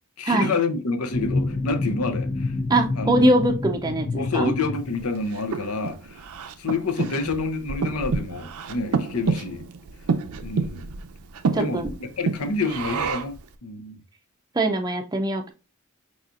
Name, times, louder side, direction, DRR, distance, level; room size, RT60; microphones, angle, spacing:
voice 1, 0.2-2.5 3.0-3.2 4.1-6.2 6.6-9.6 10.4-10.9 11.6-13.4 13.6-14.0, left 3 dB, 80° left, 0.7 m, -28 dB
sound 1, 1.1-5.4, left 3 dB, 35° left, 0.5 m, -28 dB
voice 2, 2.7-4.5 11.5-11.9 14.5-15.5, right 1 dB, 20° right, 0.5 m, -22 dB
Breathing, 4.9-13.4, right 4 dB, 75° right, 0.5 m, -29 dB
4.9 x 4.1 x 2.4 m
head